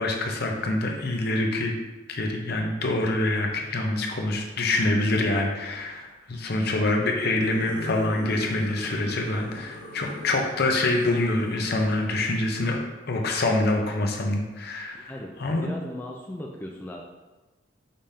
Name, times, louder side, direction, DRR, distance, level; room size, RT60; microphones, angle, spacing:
voice 1, 0.0-1.7 2.1-12.8 13.1-15.1 15.4-15.7, left 2 dB, 55° left, 2 dB, 0.7 m, -25 dB
sound 1, 3.4-3.7 5.3-5.8 7.3-12.7, left 2 dB, 90° left, 0.8 m, -41 dB
voice 2, 14.9-15.3 15.6-17.0, left 1 dB, 10° left, -1 dB, 0.3 m, -37 dB
5.3 x 3.4 x 2.7 m, 1.2 s
head